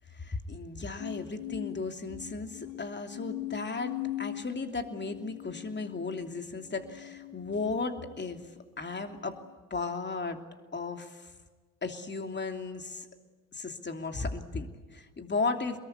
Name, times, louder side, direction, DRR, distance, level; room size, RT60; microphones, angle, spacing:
voice 1, 0.1-8.4 8.8-9.4 9.7-10.4 10.7-11.3 11.8-13.1 13.5-15.8, left 3 dB, 30° left, 5 dB, 3.0 m, -35 dB
sound 1, 1.0-8.4 9.0-9.5, left 16 dB, 80° left, 1.5 m, -41 dB
24.5 x 21.5 x 9.9 m, 1.3 s
hypercardioid pair, 55°, 39 cm